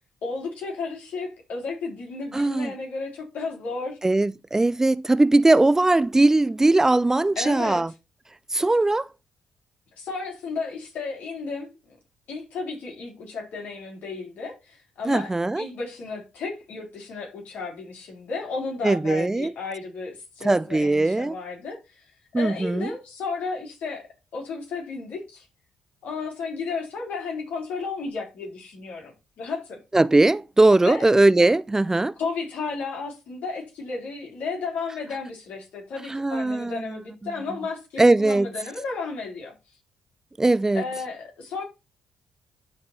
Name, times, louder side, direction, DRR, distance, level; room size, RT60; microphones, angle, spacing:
voice 1, 0.2-4.0 7.4-7.8 10.0-12.0 12.3-15.3 15.6-22.0 22.3-24.1 24.3-25.4 26.0-29.8 30.8-31.1 32.2-39.5 40.7-41.6, left 4 dB, 70° left, 3.7 m, -33 dB
voice 2, 2.3-2.7 4.0-7.9 8.5-9.1 15.1-15.7 18.8-19.5 20.4-21.4 22.3-22.9 29.9-32.1 36.1-37.0 38.0-38.5 40.4-40.8, right 2 dB, 20° right, 0.4 m, -20 dB
12.0 x 4.3 x 4.3 m
supercardioid pair, 55°, 3 cm